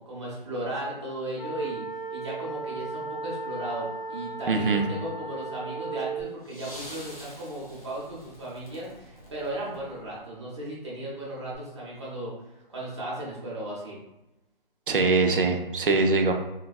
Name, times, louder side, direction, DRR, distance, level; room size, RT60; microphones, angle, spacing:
voice 1, 0.0-14.0, right 1 dB, 30° right, -6 dB, 0.9 m, -36 dB
sound 1, 1.3-6.3, right 3 dB, 15° left, 0.5 m, -36 dB
voice 2, 4.5-4.9 14.9-16.3, right 3 dB, 65° right, 4 dB, 0.5 m, -22 dB
sound 2, 6.2-10.4 11.5-11.6, left 1 dB, 40° left, 0.9 m, -46 dB
3.9 x 2.2 x 2.3 m, 0.94 s
hypercardioid pair, 175°, 29 cm